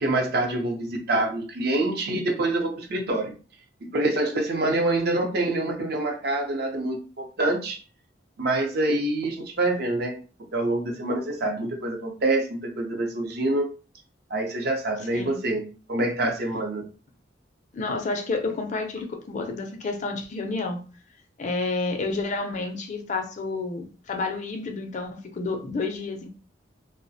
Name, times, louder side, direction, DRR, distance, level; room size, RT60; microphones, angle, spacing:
voice 1, 0.0-3.3 3.8-7.8 8.4-10.2 10.5-13.7 14.3-16.9, right 2 dB, 60° right, 0.6 m, -26 dB
voice 2, 17.7-20.8 21.4-26.3, left 3 dB, 40° left, 0.4 m, -30 dB
2.3 x 2.0 x 2.6 m
head